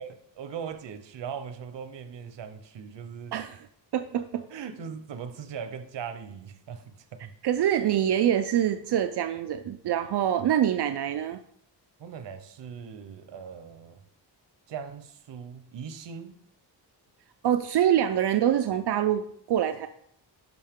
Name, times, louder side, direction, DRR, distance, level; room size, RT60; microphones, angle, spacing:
voice 1, 0.0-3.4 4.5-7.3 12.0-14.0 14.7-16.4, right 7 dB, 85° right, 0.9 m, -40 dB
voice 2, 3.9-4.5 7.4-11.4 17.4-19.9, right 10 dB, 70° right, 0.5 m, -25 dB
10.5 x 5.4 x 3.6 m
wide cardioid pair, 175°, 42 cm